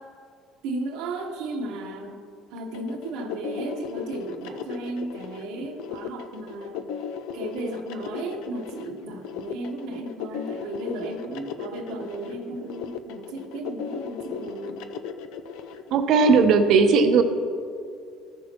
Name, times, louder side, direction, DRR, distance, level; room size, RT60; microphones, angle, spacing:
voice 1, 0.6-2.2 2.5-6.8 7.3-14.8, right 2 dB, 80° right, 3 dB, 1.1 m, -34 dB
sound 1, 2.7-16.4, left 7 dB, 85° left, 0.4 m, -36 dB
voice 2, 15.9-17.2, right 5 dB, 65° right, 8 dB, 0.7 m, -17 dB
14.0 x 6.3 x 2.9 m, 2.3 s
cardioid pair, 115°, 0 cm